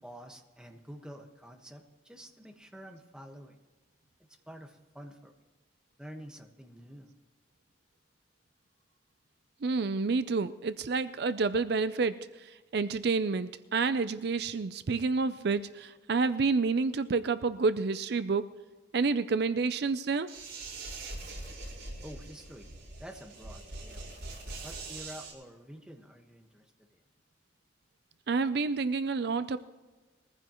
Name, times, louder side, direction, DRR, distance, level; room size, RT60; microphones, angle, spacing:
voice 1, 0.0-3.6 4.2-5.3 6.0-7.1 22.0-22.7 23.0-24.1 24.6-27.0, equal, 5° right, 3 dB, 1.4 m, -48 dB
voice 2, 9.6-18.5 18.9-20.3 28.3-29.6, right 4 dB, 60° right, 13 dB, 0.5 m, -29 dB
sound 1, 20.3-25.3, right 2 dB, 75° right, 5.0 m, -43 dB
21.5 x 15.0 x 3.0 m, 1.3 s
head